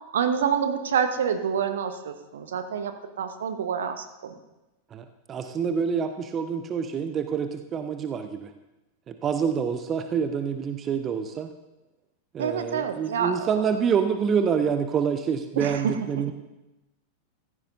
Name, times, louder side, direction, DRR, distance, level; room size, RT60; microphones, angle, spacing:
voice 1, 0.1-4.3 12.4-13.6 15.6-15.9, right 7 dB, 60° right, 8 dB, 1.0 m, -27 dB
voice 2, 4.9-8.5 9.1-11.5 12.3-16.3, right 7 dB, 25° right, 8 dB, 0.7 m, -27 dB
15.5 x 14.0 x 2.6 m, 1.0 s
figure-of-eight pair, 90°, 0 cm